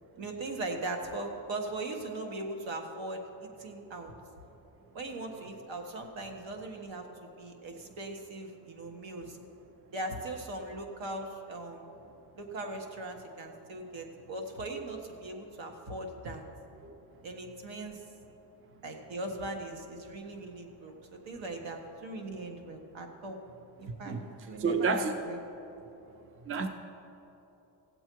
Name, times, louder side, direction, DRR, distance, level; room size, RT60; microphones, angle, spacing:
voice 1, 0.2-4.1 4.9-9.4 9.9-11.9 12.4-16.4 17.2-18.0 18.8-20.9 21.3-23.4 23.8-24.1 24.5-25.4, right 2 dB, 70° right, 3 dB, 1.5 m, -39 dB
voice 2, 24.6-25.2 26.5-26.7, right 4 dB, 30° right, 7 dB, 0.5 m, -29 dB
16.5 x 7.6 x 4.6 m, 3.0 s
cardioid pair, 145°, 47 cm